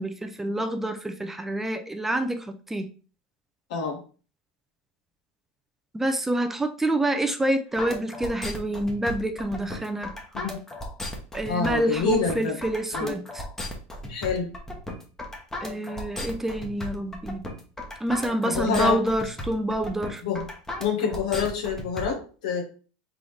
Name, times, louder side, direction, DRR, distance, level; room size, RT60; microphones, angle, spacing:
voice 1, 0.0-2.9 5.9-10.1 11.3-13.5 15.6-17.4 18.0-20.2, right 1 dB, 10° right, 7 dB, 0.5 m, -27 dB
sound 1, 7.8-22.0, left 1 dB, 10° left, 1.0 m, -35 dB
voice 2, 11.5-12.6 12.9-13.1 14.1-14.5 18.4-19.0 20.2-20.4 20.8-22.6, left 5 dB, 80° left, 2 dB, 1.3 m, -27 dB
3.8 x 3.5 x 3.2 m, 0.38 s
supercardioid pair, 115°, 4 cm